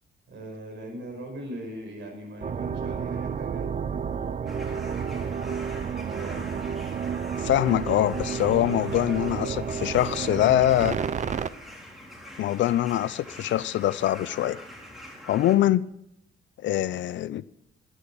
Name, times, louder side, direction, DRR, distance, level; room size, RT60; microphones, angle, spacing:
voice 1, 0.3-5.5 6.2-6.5 9.1-10.9, right 1 dB, 65° right, 5.4 m, -41 dB
sound 1, 2.4-11.5, right 7 dB, 35° right, 0.5 m, -31 dB
sound 2, 4.5-15.6, left 1 dB, ahead, 3.3 m, -44 dB
voice 2, 7.4-11.0 12.4-14.6 15.3-15.9 16.6-17.4, left 13 dB, 70° left, 0.5 m, -23 dB
11.5 x 10.0 x 6.1 m
cardioid pair, 90°, 20 cm